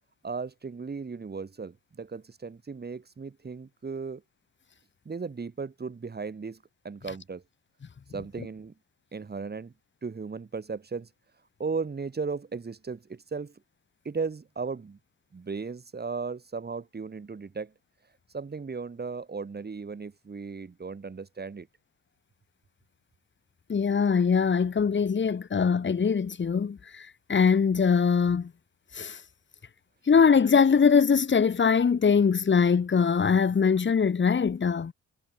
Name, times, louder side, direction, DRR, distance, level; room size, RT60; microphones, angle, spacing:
voice 1, 0.2-4.2 5.0-6.6 6.8-7.4 8.1-8.7 9.1-9.7 10.0-11.1 11.6-13.6 14.0-15.0 15.3-17.7 18.3-21.7, right 4 dB, 35° right, 7.8 m, -36 dB
voice 2, 23.7-28.5 28.9-29.2 30.1-34.9, left 6 dB, 40° left, 3.6 m, -22 dB
cardioid pair, 90°, 30 cm